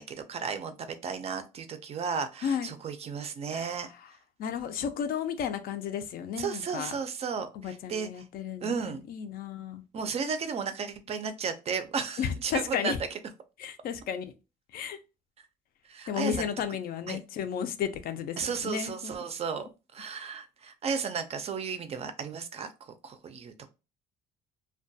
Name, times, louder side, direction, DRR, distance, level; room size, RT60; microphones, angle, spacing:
voice 1, 0.0-3.9 6.4-8.2 8.6-9.0 9.9-12.9 15.9-16.4 17.1-17.2 18.4-23.7, right 6 dB, 40° right, 0.4 m, -34 dB
voice 2, 2.4-2.7 3.5-3.8 4.4-6.9 7.5-8.7 9.1-9.8 12.2-13.0 13.6-14.3 14.7-15.0 16.1-19.1, left 8 dB, 60° left, 0.4 m, -33 dB
2.2 x 2.2 x 2.6 m
cardioid pair, 110°, 17 cm